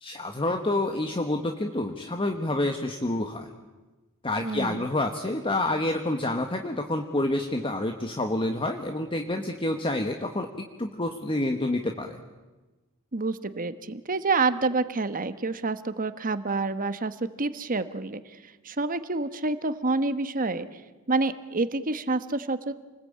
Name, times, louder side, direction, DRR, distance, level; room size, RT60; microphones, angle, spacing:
voice 1, 0.0-3.5 4.2-10.5 10.8-12.2, left 1 dB, 25° left, 5 dB, 1.3 m, -28 dB
voice 2, 4.4-4.8 13.1-20.7 21.1-22.7, right 3 dB, 40° right, 11 dB, 1.2 m, -28 dB
28.5 x 20.5 x 8.7 m, 1.2 s
head